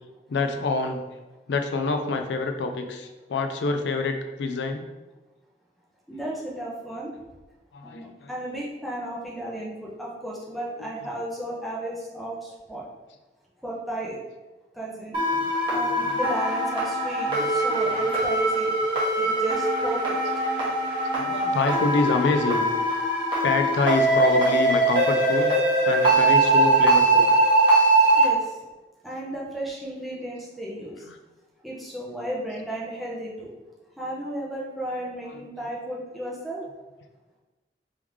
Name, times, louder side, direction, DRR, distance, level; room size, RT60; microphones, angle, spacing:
voice 1, 0.3-1.0 1.5-4.8 6.1-6.2 7.7-8.4 10.8-11.1 15.3-16.2 17.3-18.1 21.1-22.7 23.4-25.5 25.8-27.3 31.1-31.2 35.3-35.4, left 3 dB, 85° left, 5 dB, 0.4 m, -27 dB
voice 2, 6.1-7.1 7.8-12.8 13.6-14.2 14.7-15.2 15.7-18.7 19.2-20.2 28.1-28.6 29.0-31.0 31.6-33.5 34.0-36.6, right 1 dB, ahead, -6 dB, 0.7 m, -34 dB
sound 1, 15.1-28.2, right 2 dB, 30° right, 1.1 m, -22 dB
3.5 x 3.1 x 3.5 m, 1.1 s
head